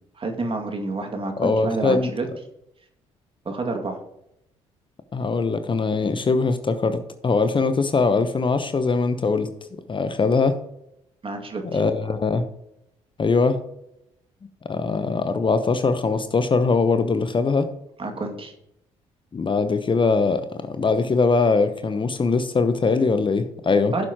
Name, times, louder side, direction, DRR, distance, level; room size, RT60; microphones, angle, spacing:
voice 1, 0.2-2.3 3.5-4.0 11.2-11.8 18.0-18.5 23.9-24.1, right 3 dB, 35° right, 4 dB, 2.2 m, -28 dB
voice 2, 1.4-2.1 5.1-9.5 9.9-10.6 11.6-12.4 13.2-13.6 14.7-17.7 19.3-23.9, left 4 dB, 35° left, 10 dB, 0.9 m, -21 dB
15.0 x 7.1 x 3.0 m, 0.80 s
hypercardioid pair, 45°, 16 cm